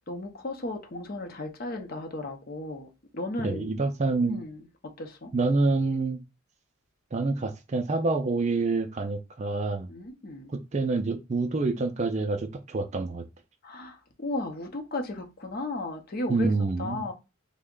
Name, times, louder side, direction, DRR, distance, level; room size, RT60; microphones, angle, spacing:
voice 1, 0.1-2.9 3.1-3.7 4.3-4.7 5.0-5.3 9.9-10.5 13.6-16.5 16.8-17.1, left 2 dB, 45° left, 0.7 m, -35 dB
voice 2, 3.4-4.4 5.3-6.2 7.1-9.9 10.5-13.2 16.3-17.0, right 3 dB, 30° right, 0.3 m, -27 dB
3.4 x 2.1 x 3.6 m
head